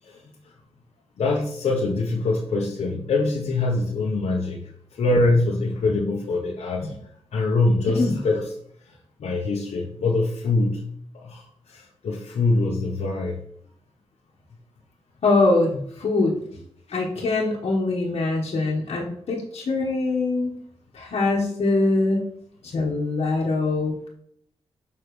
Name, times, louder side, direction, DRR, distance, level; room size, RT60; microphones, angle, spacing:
voice 1, 1.2-4.6 5.0-6.9 7.3-8.5 9.2-10.8 11.2-11.4 11.7-13.4, left 2 dB, 90° left, -2 dB, 1.0 m, -23 dB
voice 2, 7.9-8.2 15.2-16.4 16.9-20.5 20.9-22.3 22.6-24.1, left 3 dB, 75° left, -4 dB, 1.3 m, -23 dB
7.0 x 5.4 x 3.2 m, 0.68 s
wide cardioid pair, 100°, 11 cm